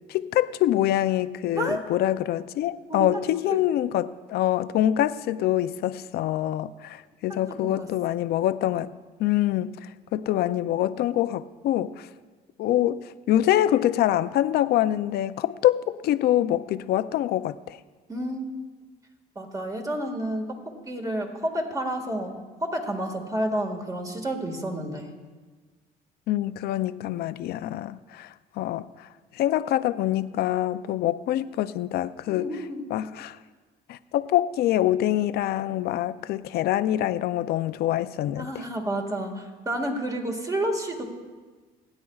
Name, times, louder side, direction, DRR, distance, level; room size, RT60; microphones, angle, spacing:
voice 1, 0.1-8.9 9.2-12.1 12.6-17.8 26.3-29.1 29.3-32.5 32.9-33.4 33.9-38.6, left 13 dB, 70° left, 14 dB, 0.5 m, -25 dB
voice 2, 2.9-3.2 3.5-3.6 7.6-8.2 18.1-18.5 19.4-25.1 32.3-33.0 38.4-41.0, right 1 dB, 20° right, 2 dB, 1.8 m, -30 dB
29.0 x 9.8 x 2.4 m, 1.4 s
cardioid pair, 110°, 17 cm